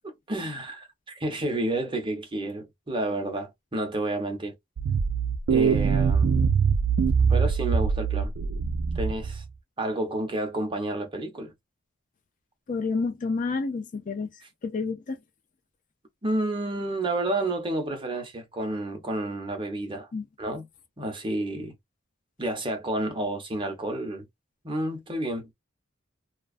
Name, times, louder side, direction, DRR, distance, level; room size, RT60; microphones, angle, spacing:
voice 1, 0.3-4.5 5.5-6.4 7.3-8.3 8.9-9.4 9.8-11.5 16.2-20.1 20.4-20.6 21.0-21.7 22.4-24.3 24.6-25.5, right 1 dB, 25° right, 0.7 m, -30 dB
sound 1, 4.8-9.4, right 6 dB, 75° right, 0.3 m, -23 dB
voice 2, 12.7-14.3 14.6-15.2 20.1-20.2, left 4 dB, 40° left, 0.4 m, -29 dB
2.4 x 2.3 x 2.3 m
head